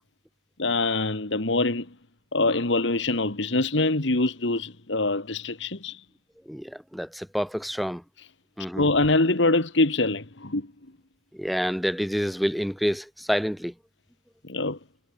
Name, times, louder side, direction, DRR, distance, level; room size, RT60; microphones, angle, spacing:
voice 1, 0.6-1.9 2.3-6.0 8.8-10.7 14.4-14.8, left 2 dB, 75° left, 1.9 m, -24 dB
voice 2, 6.5-8.0 8.6-8.9 11.3-13.7, equal, ahead, 2.4 m, -28 dB
head